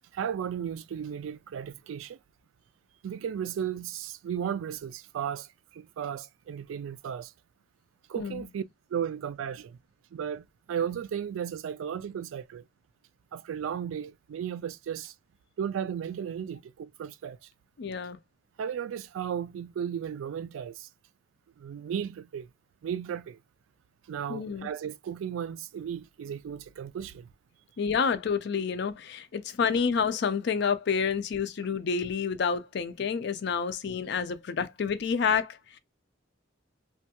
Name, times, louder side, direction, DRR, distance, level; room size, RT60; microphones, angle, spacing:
voice 1, 0.1-2.2 3.0-5.5 5.7-7.3 8.1-8.6 8.9-9.8 10.1-12.6 13.3-15.1 15.6-17.4 18.6-20.9 21.6-22.5 22.8-23.4 24.1-27.3, right 8 dB, 85° right, 0.3 m, -35 dB
voice 2, 17.8-18.2 24.3-24.7 27.8-35.8, left 6 dB, 60° left, 0.4 m, -29 dB
3.1 x 2.3 x 2.8 m
head